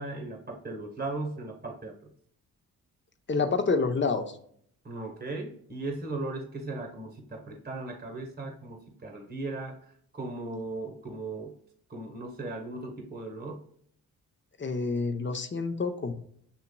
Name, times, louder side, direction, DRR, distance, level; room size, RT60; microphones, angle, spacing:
voice 1, 0.0-2.1 4.8-11.5 11.9-13.6, right 2 dB, 25° right, 2 dB, 1.2 m, -37 dB
voice 2, 3.3-4.4 14.6-16.1, left 4 dB, 30° left, 7 dB, 0.8 m, -28 dB
7.2 x 2.8 x 2.2 m, 0.65 s
supercardioid pair, 50°, 37 cm